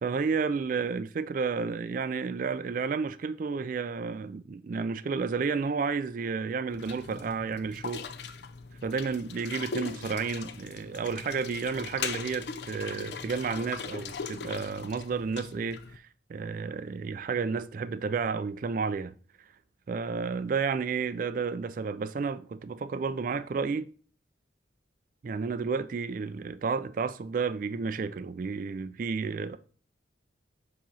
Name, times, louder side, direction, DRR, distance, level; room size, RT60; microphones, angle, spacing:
voice 1, 0.0-8.1 8.8-19.1 19.9-23.9 25.2-29.6, right 5 dB, 45° right, 0.3 m, -31 dB
sound 1, 6.7-16.0, left 5 dB, 55° left, 0.5 m, -40 dB
7.4 x 3.0 x 5.3 m
head